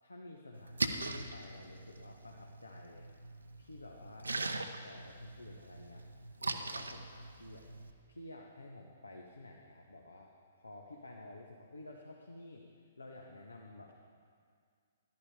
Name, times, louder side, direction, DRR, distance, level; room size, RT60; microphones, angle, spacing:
voice 1, 0.0-3.1 3.6-6.0 6.5-12.6 13.0-13.9, left 2 dB, 80° left, 0 dB, 1.3 m, -51 dB
Splash splatter, 0.5-7.9, right 2 dB, 75° right, 0.8 m, -41 dB
14.0 x 12.0 x 5.0 m, 2.2 s
figure-of-eight pair, 120°, 0 cm